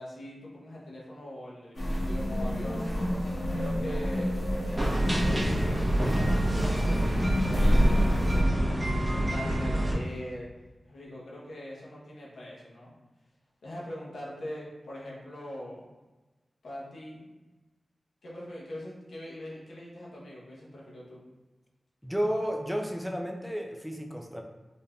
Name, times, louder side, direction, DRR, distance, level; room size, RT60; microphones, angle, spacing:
voice 1, 0.0-3.0 3.5-4.4 5.2-8.5 8.9-10.5 10.9-12.9 13.6-15.9 16.6-17.3 18.2-21.2, left 1 dB, 90° left, -6 dB, 0.8 m, -42 dB
sound 1, 1.7-8.4, equal, 60° left, 0.9 m, -28 dB
sound 2, 4.8-9.9, right 1 dB, 30° right, 0.8 m, -27 dB
voice 2, 22.0-24.4, equal, ahead, 1 dB, 0.5 m, -32 dB
3.9 x 2.6 x 2.3 m, 1.2 s
cardioid pair, 50°, 0 cm